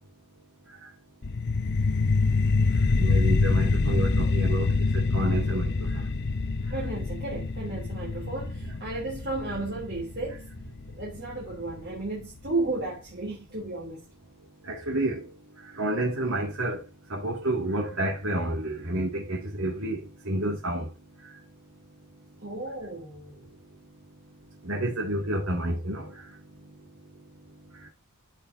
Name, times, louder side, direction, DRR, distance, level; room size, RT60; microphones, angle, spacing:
sound 1, 1.2-12.2, left 3 dB, 55° left, 0.7 m, -26 dB
voice 1, 3.0-6.0 14.6-15.3 15.7-16.8 17.1-20.9 24.6-26.1, right 1 dB, 70° right, 2.3 m, -29 dB
voice 2, 6.7-10.5 11.0-14.1 22.4-23.5, right 2 dB, 55° right, 3.0 m, -34 dB
13.5 x 5.2 x 2.7 m
head